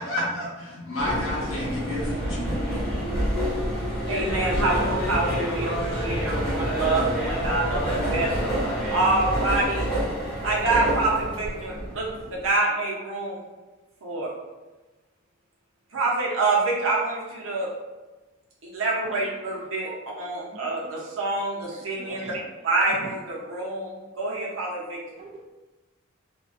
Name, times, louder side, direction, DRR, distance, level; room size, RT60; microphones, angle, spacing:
voice 1, 0.0-2.6, left 1 dB, 80° left, -6 dB, 1.0 m, -30 dB
sound 1, 1.0-12.4, equal, 25° left, 1.0 m, -27 dB
voice 2, 4.1-8.4 8.9-9.9 10.4-13.4 14.0-14.3 15.9-17.7 18.6-19.9 20.2-22.3 22.6-25.0, right 2 dB, 70° right, -4 dB, 0.7 m, -26 dB
voice 3, 19.9-20.2 22.0-22.4 23.0-23.1 25.2-25.4, right 2 dB, 30° right, 1 dB, 0.3 m, -40 dB
2.5 x 2.2 x 2.4 m, 1.1 s
head